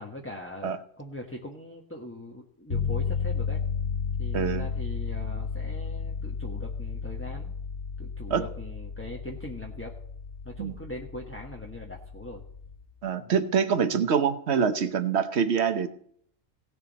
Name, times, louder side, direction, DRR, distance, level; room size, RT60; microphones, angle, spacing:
voice 1, 0.0-3.6 4.2-7.5 8.0-9.9 10.4-12.4 13.2-13.4, left 1 dB, 10° left, -1 dB, 1.3 m, -41 dB
sound 1, 2.7-12.8, left 5 dB, 85° left, 2.5 m, -33 dB
voice 2, 4.3-4.7 8.3-8.4 10.6-10.7 13.0-15.9, right 7 dB, 60° right, 10 dB, 1.2 m, -25 dB
17.5 x 7.1 x 4.2 m, 0.65 s
omnidirectional pair, 1.4 m